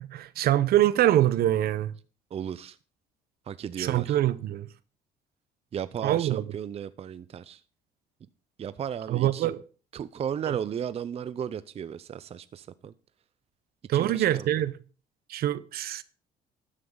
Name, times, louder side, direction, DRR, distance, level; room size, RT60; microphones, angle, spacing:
voice 1, 0.0-1.9 3.8-4.7 6.0-6.4 9.1-9.6 10.5-10.6 13.9-14.7 15.3-16.0, right 13 dB, 65° right, 0.8 m, -24 dB
voice 2, 2.3-2.8 3.5-4.2 5.7-7.6 8.6-9.5 9.9-12.9 13.9-14.6, right 8 dB, 35° right, 0.5 m, -35 dB
12.5 x 9.9 x 3.9 m
cardioid pair, 110°, 17 cm